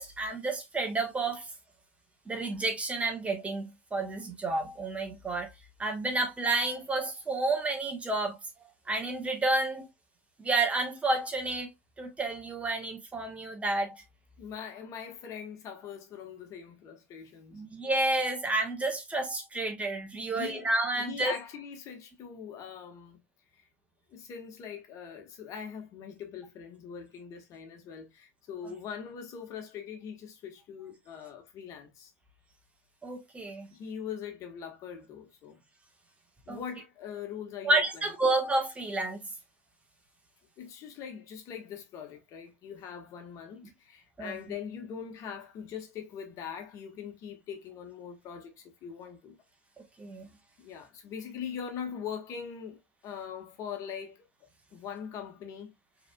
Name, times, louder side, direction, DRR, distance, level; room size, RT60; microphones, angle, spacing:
voice 1, 0.0-1.5 2.3-5.5 5.8-8.4 8.9-9.9 10.4-11.7 12.0-14.0 17.5-21.3 33.0-33.7 36.5-36.6 37.6-39.2 44.2-44.4 50.0-50.3, right 2 dB, 15° right, 1.4 m, -30 dB
voice 2, 14.4-17.6 20.3-20.7 21.0-23.2 23.5-23.6 24.1-32.1 33.7-35.6 36.5-38.3 40.6-49.4 50.6-55.7, left 7 dB, 45° left, 1.5 m, -42 dB
4.7 x 3.4 x 2.3 m
hypercardioid pair, 90°, 8 cm